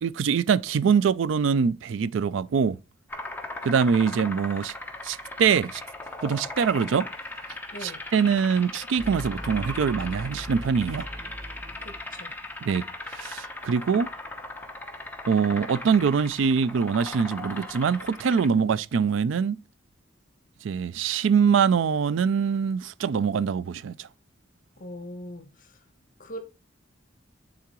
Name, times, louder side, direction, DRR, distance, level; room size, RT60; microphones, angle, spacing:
voice 1, 0.0-2.8 3.6-4.7 5.0-5.8 6.2-7.1 7.8-11.1 12.6-12.8 13.1-14.1 15.2-19.6 20.6-24.1, right 6 dB, 75° right, 0.4 m, -24 dB
sound 1, 3.1-18.5, left 2 dB, 10° left, 0.9 m, -38 dB
voice 2, 7.7-8.1 11.8-12.4 24.8-25.8 26.2-26.4, equal, 45° left, 1.1 m, -41 dB
sound 2, 9.0-12.6, equal, 25° right, 0.9 m, -39 dB
10.5 x 3.8 x 3.0 m
head